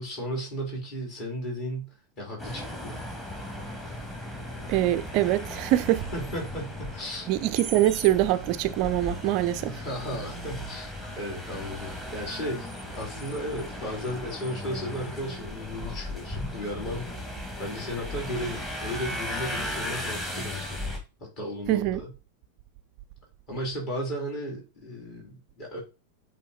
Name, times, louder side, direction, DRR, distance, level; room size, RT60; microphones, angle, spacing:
voice 1, 0.0-3.0 6.1-7.3 9.7-17.1 17.6-20.8 21.2-22.1 23.5-25.8, equal, 40° left, 3.7 m, -35 dB
sound 1, 2.4-21.0, left 1 dB, 15° left, 2.0 m, -36 dB
voice 2, 4.7-6.1 7.3-9.8 21.7-22.0, right 14 dB, 40° right, 0.4 m, -24 dB
8.1 x 3.2 x 4.1 m
figure-of-eight pair, 90°, 0 cm